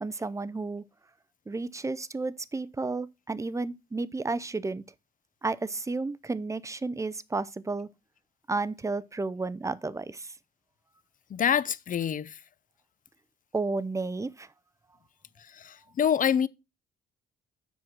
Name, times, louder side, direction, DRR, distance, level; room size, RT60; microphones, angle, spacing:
voice 1, 0.0-0.9 1.5-4.8 5.4-7.9 8.5-10.3 13.5-14.5, right 3 dB, 15° right, 0.5 m, -32 dB
voice 2, 11.3-12.4 15.4-16.5, left 8 dB, 40° left, 0.6 m, -26 dB
7.3 x 6.1 x 4.4 m
cardioid pair, 90°, 20 cm